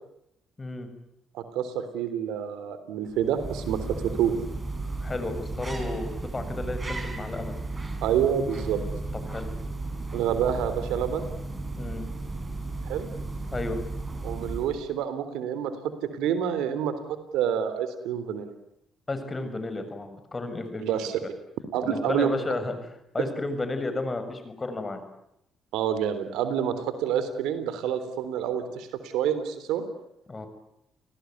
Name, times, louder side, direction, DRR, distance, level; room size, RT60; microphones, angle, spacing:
voice 1, 0.6-0.9 5.0-7.5 9.3-9.5 11.8-12.1 13.5-13.8 19.1-21.3 21.8-22.7 23.1-25.0 30.3-30.5, left 2 dB, 30° left, 9 dB, 6.9 m, -32 dB
voice 2, 1.3-4.4 8.0-8.8 10.1-11.3 12.9-13.1 14.2-15.7 16.1-16.9 17.3-18.5 20.8-21.2 21.7-22.3 25.7-29.9, right 9 dB, 80° right, 11 dB, 3.5 m, -28 dB
sound 1, 3.1-14.9, right 2 dB, 30° right, 6.2 m, -34 dB
29.5 x 19.0 x 9.6 m, 0.78 s
supercardioid pair, 60°, 0 cm